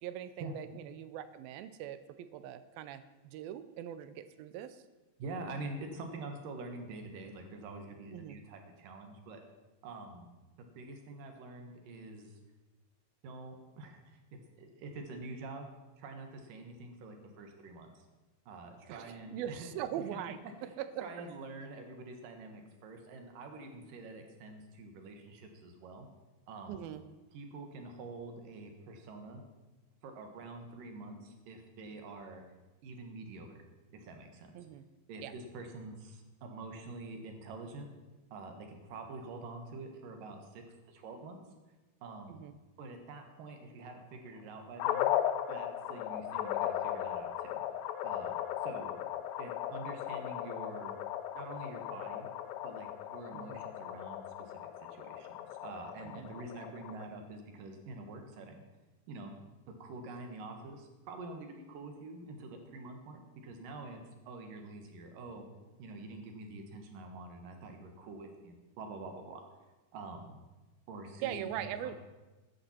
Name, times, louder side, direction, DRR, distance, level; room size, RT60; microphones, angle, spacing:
voice 1, 0.0-4.8 8.1-8.4 18.9-21.1 26.7-27.0 34.5-34.8 35.2-35.3 42.3-42.5 53.3-53.6 56.0-56.3 71.2-71.9, right 11 dB, 85° right, 12 dB, 2.5 m, -41 dB
voice 2, 5.2-9.4 9.8-10.3 10.6-12.4 13.2-15.7 16.0-18.1 18.5-19.7 21.0-26.1 26.5-26.8 27.3-29.4 30.0-32.4 32.8-33.6 33.9-34.5 35.1-37.9 38.3-41.4 42.0-42.4 42.8-45.1 45.5-47.6 48.0-48.3 48.6-48.9 49.4-51.0 51.3-52.3 52.6-54.6 54.9-58.6 59.1-59.3 59.8-64.0 64.3-65.5 65.8-69.4 69.9-70.4 70.9-71.7, right 3 dB, 70° right, 4 dB, 3.0 m, -46 dB
sound 1, 44.8-57.1, left 11 dB, 85° left, 2.4 m, -37 dB
15.0 x 11.0 x 4.4 m, 1.2 s
omnidirectional pair, 4.3 m